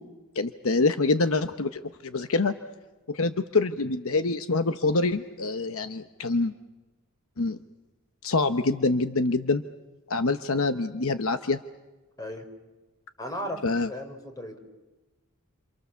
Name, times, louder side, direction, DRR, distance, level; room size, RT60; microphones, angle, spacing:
voice 1, 0.3-2.5 3.1-6.5 7.4-7.6 8.2-9.6 10.1-11.6 13.6-13.9, left 3 dB, 65° left, 9 dB, 0.9 m, -25 dB
voice 2, 13.2-13.6 13.9-14.6, equal, 15° left, 5 dB, 4.4 m, -35 dB
28.5 x 28.0 x 7.0 m, 1.1 s
head